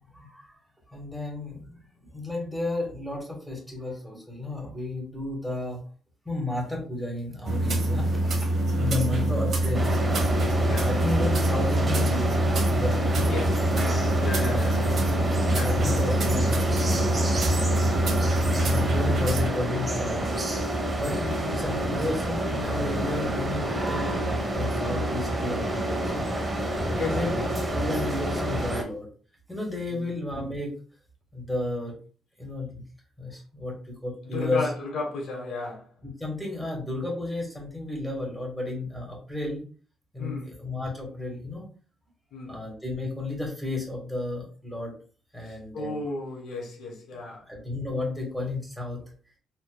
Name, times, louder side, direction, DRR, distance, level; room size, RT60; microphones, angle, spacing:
voice 1, 0.1-0.6 0.9-5.8 6.3-8.5 8.8-9.9 10.8-13.4 14.2-14.7 15.5-16.8 17.4-17.9 18.3-20.2 21.0-21.2 21.4-26.5 27.0-29.1 29.5-30.7 31.3-31.9 32.4-32.8 33.2-34.6 36.0-39.6 40.1-41.7 42.5-44.9 45.3-46.0 47.5-49.0, left 2 dB, ahead, 1.7 m, -32 dB
sound 1, 7.4-19.5, right 1 dB, 60° right, 1.0 m, -25 dB
voice 2, 8.7-9.3 10.6-10.9 13.3-14.8 15.5-15.8 21.2-21.6 26.9-27.5 29.9-30.1 34.2-35.9 40.2-40.6 42.3-42.6 45.4-47.5, left 3 dB, 70° left, 1.2 m, -35 dB
sound 2, 9.7-28.8, right 1 dB, 25° right, 1.0 m, -28 dB
4.3 x 2.9 x 2.3 m
cardioid pair, 90°, 0 cm